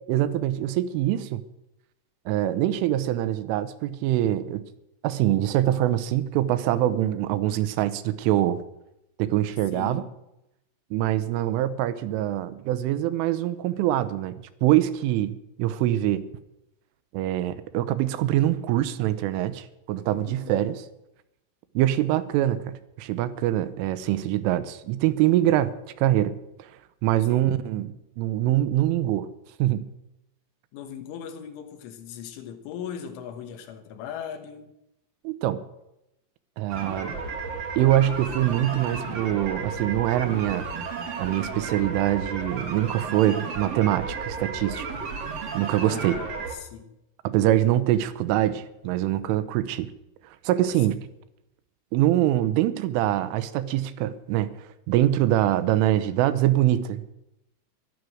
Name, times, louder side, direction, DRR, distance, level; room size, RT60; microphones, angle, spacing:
voice 1, 0.1-1.4 2.3-4.6 5.0-8.6 9.2-10.0 10.9-14.3 14.6-16.2 17.1-20.8 21.8-26.7 27.0-29.3 29.6-29.9 35.2-35.6 36.6-37.2 37.8-45.0 45.5-46.2 47.2-49.9 50.4-51.0 51.9-57.1, right 13 dB, 80° right, 3.2 m, -24 dB
voice 2, 9.7-10.1 20.3-20.6 27.3-27.5 30.7-34.7 45.8-47.0, left 8 dB, 75° left, 3.5 m, -39 dB
sound 1, 36.7-46.5, right 4 dB, 65° right, 1.5 m, -33 dB
14.5 x 12.0 x 6.4 m
omnidirectional pair, 5.8 m